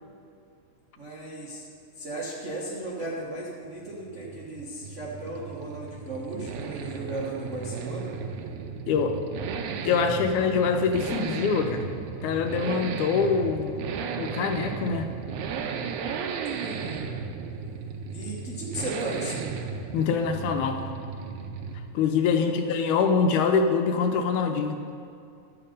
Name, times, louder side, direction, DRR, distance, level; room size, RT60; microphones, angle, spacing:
voice 1, 1.0-1.7 2.0-8.1 16.5-17.0 18.1-19.5 22.4-23.2, right 1 dB, 65° right, -5 dB, 0.7 m, -36 dB
Accelerating revving vroom, 3.8-22.0 22.3-22.4, right 5 dB, 80° right, 2.1 m, -35 dB
voice 2, 9.9-11.8 12.2-13.8 14.2-15.1 19.9-20.8 21.9-24.8, left 5 dB, 85° left, 5 dB, 2.2 m, -24 dB
11.5 x 7.9 x 5.2 m, 2.4 s
omnidirectional pair, 3.5 m